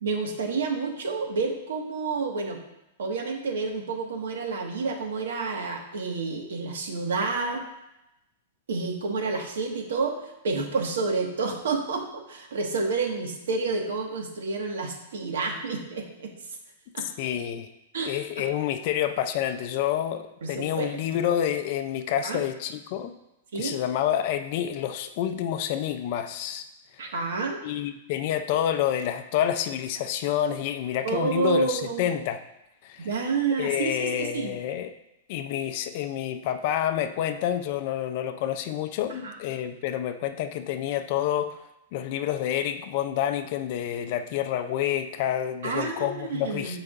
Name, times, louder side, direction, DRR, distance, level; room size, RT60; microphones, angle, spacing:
voice 1, 0.0-2.6 3.0-7.6 8.7-10.2 10.4-16.3 16.9-17.1 17.9-18.1 20.4-21.2 22.2-22.5 23.5-23.8 27.0-27.6 31.0-32.1 33.0-34.5 39.1-39.3 45.6-46.8, right 4 dB, 75° right, 2 dB, 1.6 m, -29 dB
voice 2, 17.2-17.7 18.1-23.1 23.6-26.7 27.6-32.4 32.8-33.1 33.6-34.9 35.3-41.6 41.9-46.8, left 10 dB, 35° left, 8 dB, 0.4 m, -28 dB
14.5 x 4.9 x 2.5 m, 0.89 s
supercardioid pair, 180°, 0 cm